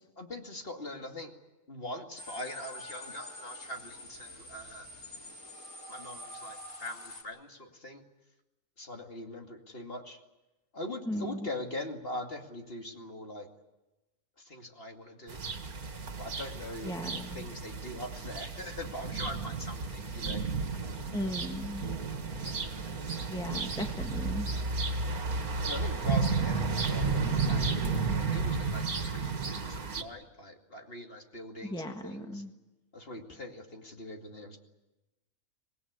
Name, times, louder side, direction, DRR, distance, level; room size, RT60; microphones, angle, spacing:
voice 1, 0.2-1.3 1.7-4.9 5.9-8.0 8.8-10.2 10.7-13.5 14.4-15.4 16.2-20.4 25.6-32.4 32.9-34.6, left 1 dB, 40° left, 3 dB, 2.6 m, -42 dB
sound 1, 2.2-7.2, left 1 dB, 80° left, 4.9 m, -46 dB
voice 2, 11.1-11.4 16.8-17.5 21.1-21.8 23.3-24.5 31.6-32.5, equal, 5° left, 5 dB, 1.5 m, -36 dB
sound 2, 15.3-30.0, right 4 dB, 80° right, 2.4 m, -32 dB
25.0 x 19.0 x 9.6 m, 1.0 s
omnidirectional pair, 1.5 m